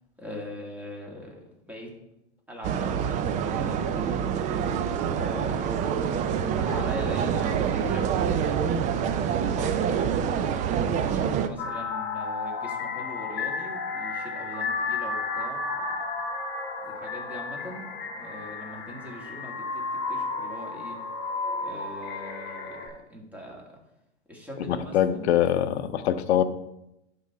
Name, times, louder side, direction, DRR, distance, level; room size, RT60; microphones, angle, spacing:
voice 1, 0.2-1.9 2.5-4.7 5.1-6.0 6.4-8.7 9.5-10.1 11.0-16.0 16.8-21.0 21.6-23.8 24.3-25.6 26.3-26.4, left 1 dB, 5° right, -2 dB, 2.0 m, -41 dB
sound 1, 2.6-11.5, right 7 dB, 20° right, 0.4 m, -26 dB
sound 2, 11.6-22.9, left 4 dB, 30° left, 2.1 m, -32 dB
voice 2, 24.7-26.4, left 10 dB, 65° left, 11 dB, 0.7 m, -23 dB
11.0 x 3.8 x 4.2 m, 0.86 s
hypercardioid pair, 105°, 35 cm